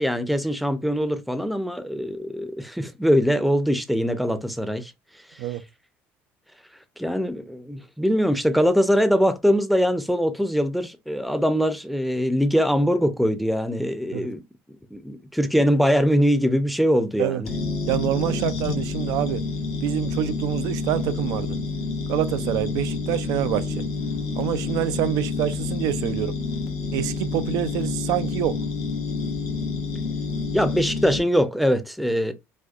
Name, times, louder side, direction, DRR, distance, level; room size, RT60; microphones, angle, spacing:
voice 1, 0.0-4.9 7.0-14.4 14.9-17.5 30.5-32.3, equal, ahead, 0.6 m, -22 dB
sound 1, 17.5-31.2, left 4 dB, 70° left, 1.0 m, -28 dB
voice 2, 17.9-19.4 19.8-21.6 22.1-23.8 24.3-26.4 26.9-28.6, right 12 dB, 70° right, 0.4 m, -26 dB
4.2 x 2.3 x 2.4 m
supercardioid pair, 85°, 6 cm